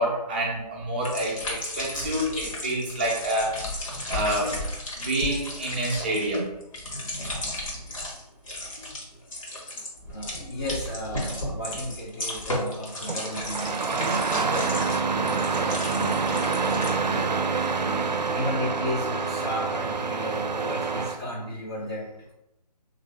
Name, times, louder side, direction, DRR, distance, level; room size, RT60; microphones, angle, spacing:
voice 1, 0.0-3.6 4.1-4.6 5.0-6.5, right 1 dB, 15° right, -4 dB, 0.5 m, -27 dB
sound 1, 1.0-8.2 8.5-9.0 9.3-16.9, left 1 dB, 50° left, 1.1 m, -34 dB
voice 2, 9.7-22.3, left 1 dB, 35° left, -5 dB, 0.7 m, -35 dB
Engine starting, 13.1-21.2, right 4 dB, 80° right, 0.5 m, -27 dB
3.2 x 2.6 x 3.2 m, 0.88 s
figure-of-eight pair, 150°, 21 cm